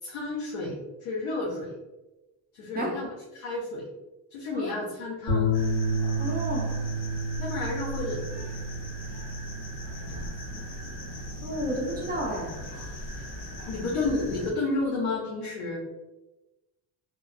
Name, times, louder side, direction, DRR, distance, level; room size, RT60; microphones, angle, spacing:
voice 1, 0.0-1.7 2.5-3.9 4.3-5.5 7.4-8.2 9.9-10.3 13.1-15.8, left 2 dB, 85° left, -3 dB, 0.7 m, -32 dB
sound 1, 5.3-13.7, equal, 40° left, 1.2 m, -32 dB
sound 2, 5.5-14.5, left 1 dB, 65° left, 1.1 m, -40 dB
voice 2, 6.2-6.7 11.4-12.5 13.8-14.1, equal, 20° right, -2 dB, 0.7 m, -32 dB
2.9 x 2.0 x 2.4 m, 1.0 s
cardioid pair, 100°, 46 cm